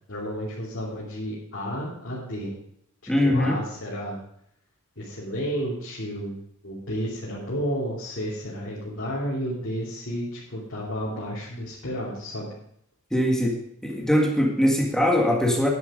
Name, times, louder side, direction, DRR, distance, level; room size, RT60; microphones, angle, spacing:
voice 1, 0.1-2.5 3.2-4.2 5.0-6.4 6.6-12.5, equal, 55° left, -8 dB, 3.0 m, -32 dB
voice 2, 3.1-3.6 13.1-13.6 13.8-15.7, left 1 dB, 5° left, -1 dB, 1.7 m, -21 dB
10.5 x 8.1 x 5.1 m, 0.71 s
head